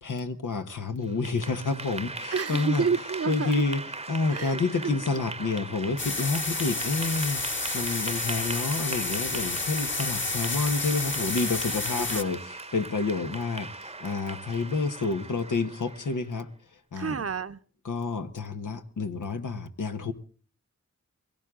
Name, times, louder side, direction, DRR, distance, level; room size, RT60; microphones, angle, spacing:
voice 1, 0.0-2.9 3.3-17.2 17.8-20.1, left 4 dB, 85° left, 7 dB, 1.4 m, -29 dB
Clapping / Applause, 1.0-16.3, right 2 dB, 20° right, 0.9 m, -39 dB
voice 2, 2.3-3.6 4.3-4.6 11.9-12.3 16.9-17.6, right 6 dB, 50° right, 12 dB, 0.8 m, -29 dB
sound 1, 6.0-12.2, left 3 dB, 40° left, 1.5 m, -31 dB
22.0 x 17.5 x 3.8 m, 0.41 s
wide cardioid pair, 60°, 30 cm